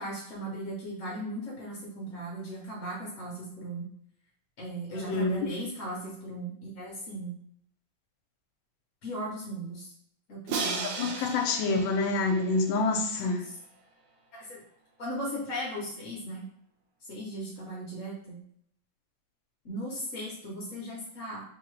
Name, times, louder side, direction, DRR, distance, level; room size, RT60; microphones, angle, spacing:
voice 1, 0.0-3.9 4.6-7.4 9.0-9.9 10.3-11.1 13.2-13.3 14.3-14.6 15.0-16.4 17.1-18.4 19.6-21.4, right 1 dB, 60° left, -4 dB, 0.9 m, -37 dB
voice 2, 5.0-5.4 11.0-13.4, left 3 dB, 75° left, 3 dB, 1.3 m, -27 dB
Crash cymbal, 10.5-13.4, right 4 dB, 70° right, 1.2 m, -36 dB
3.6 x 2.8 x 3.1 m, 0.68 s
omnidirectional pair, 2.2 m